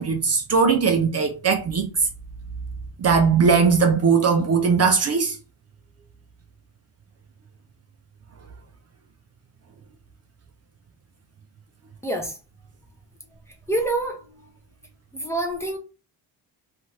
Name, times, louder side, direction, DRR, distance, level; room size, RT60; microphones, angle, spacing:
voice 1, 0.0-1.9 3.0-5.4, right 5 dB, 40° right, 0.4 m, -19 dB
voice 2, 12.0-12.4 13.7-14.5 15.1-15.8, right 2 dB, 5° left, 0.6 m, -27 dB
2.6 x 2.4 x 3.1 m
cardioid pair, 140°, 39 cm